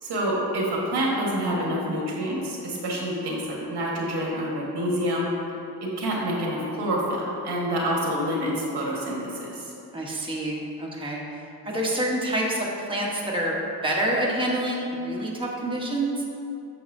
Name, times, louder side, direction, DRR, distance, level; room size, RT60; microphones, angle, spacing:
voice 1, 0.0-5.3 6.0-9.7, equal, 85° right, -3 dB, 1.6 m, -27 dB
voice 2, 9.9-11.4 11.6-13.6 13.8-16.3, right 1 dB, 15° right, -4 dB, 1.1 m, -27 dB
8.6 x 6.3 x 2.7 m, 2.7 s
cardioid pair, 95°, 39 cm